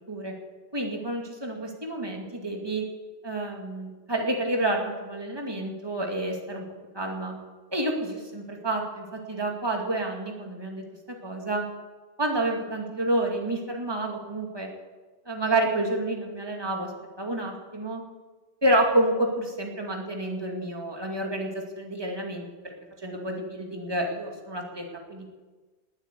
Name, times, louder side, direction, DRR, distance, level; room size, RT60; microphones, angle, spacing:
voice 1, 0.7-2.9 3.2-6.7 6.9-7.4 7.7-11.6 12.2-14.7 15.3-16.9 17.2-18.0 18.6-22.7 23.0-25.3, right 1 dB, 25° right, 1 dB, 2.3 m, -29 dB
19.5 x 8.2 x 8.2 m, 1.3 s
omnidirectional pair, 1.1 m